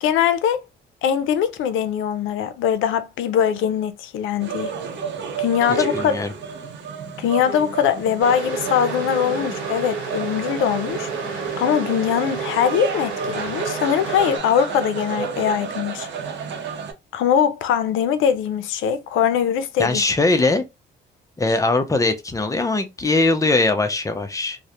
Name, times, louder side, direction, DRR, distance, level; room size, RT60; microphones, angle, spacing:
voice 1, 0.0-0.6 1.0-4.7 5.4-6.2 7.2-16.1 17.1-20.0, left 8 dB, 85° left, 0.4 m, -22 dB
sound 1, 4.4-16.9, right 5 dB, 65° right, 0.7 m, -31 dB
voice 2, 5.9-6.3 19.8-20.6 21.4-24.6, left 2 dB, 15° left, 0.5 m, -20 dB
sound 2, 8.2-14.4, right 5 dB, 85° right, 1.1 m, -30 dB
2.3 x 2.1 x 2.8 m
cardioid pair, 90°, 20 cm